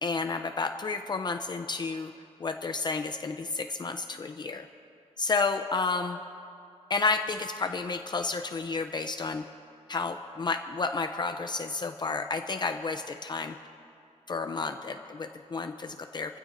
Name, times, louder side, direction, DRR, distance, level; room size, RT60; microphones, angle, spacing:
voice 1, 0.0-2.1 2.4-4.7 5.2-6.2 6.9-9.4 9.9-13.5 14.3-16.4, left 4 dB, 35° left, 7 dB, 0.5 m, -31 dB
28.0 x 15.5 x 2.6 m, 2.5 s
wide cardioid pair, 165°, 12 cm